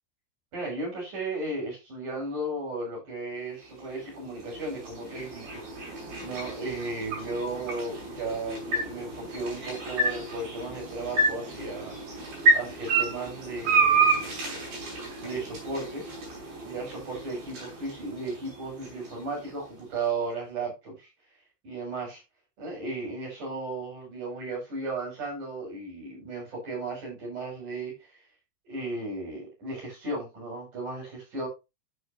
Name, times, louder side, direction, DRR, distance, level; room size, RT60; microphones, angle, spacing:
voice 1, 0.5-5.6 6.2-11.9 12.5-14.3 15.2-16.0 16.6-21.1 21.6-22.2 22.6-28.1 28.6-31.5, right 2 dB, 55° right, -4 dB, 8.5 m, -35 dB
sound 1, 3.6-19.8, right 3 dB, 85° right, 6.9 m, -30 dB
13.0 x 7.0 x 2.9 m, 0.25 s
omnidirectional pair, 4.4 m